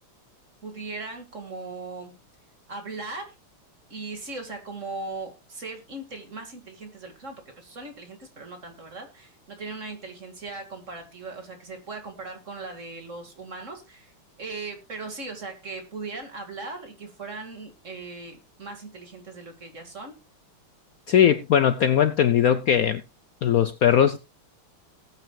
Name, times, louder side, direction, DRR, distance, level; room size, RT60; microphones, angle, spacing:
voice 1, 0.6-2.1 2.7-3.3 3.9-14.1 14.4-20.1, right 3 dB, 35° right, 2.3 m, -38 dB
voice 2, 21.1-23.0 23.4-24.2, left 9 dB, 90° left, 0.7 m, -19 dB
19.0 x 9.0 x 2.4 m
omnidirectional pair, 2.4 m